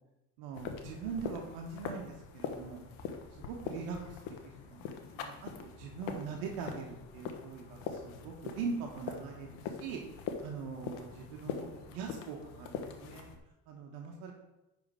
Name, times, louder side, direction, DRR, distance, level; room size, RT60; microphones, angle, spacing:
voice 1, 0.4-2.8 3.5-4.2 4.7-10.0 10.4-13.3 13.7-14.3, right 5 dB, 75° right, 1 dB, 1.3 m, -42 dB
sound 1, 0.5-13.4, left 6 dB, 70° left, 1.1 m, -43 dB
9.9 x 3.8 x 5.4 m, 0.95 s
hypercardioid pair, 55°, 49 cm